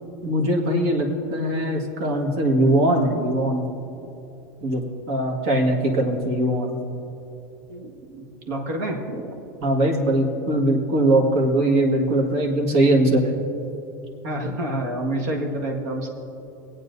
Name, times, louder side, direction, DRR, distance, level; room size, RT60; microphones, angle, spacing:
voice 1, 0.2-3.6 4.6-6.8 9.6-13.3, right 1 dB, 65° right, 1 dB, 1.7 m, -21 dB
voice 2, 7.7-9.4 14.2-16.1, right 1 dB, 80° right, 0 dB, 1.7 m, -28 dB
21.0 x 8.7 x 2.7 m, 2.9 s
supercardioid pair, 135°, 9 cm